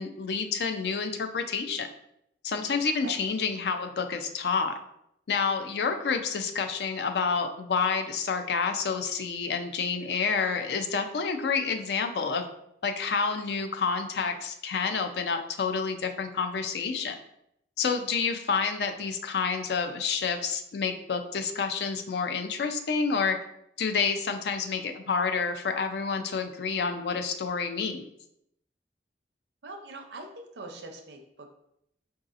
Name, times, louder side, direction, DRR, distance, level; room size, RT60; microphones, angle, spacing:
voice 1, 0.0-1.9 2.4-4.8 5.3-12.4 12.8-17.2 17.8-23.4 23.8-28.1, left 5 dB, 65° left, 6 dB, 0.4 m, -29 dB
voice 2, 29.6-31.6, right 2 dB, 75° right, 4 dB, 0.6 m, -43 dB
4.6 x 2.7 x 2.5 m, 0.77 s
head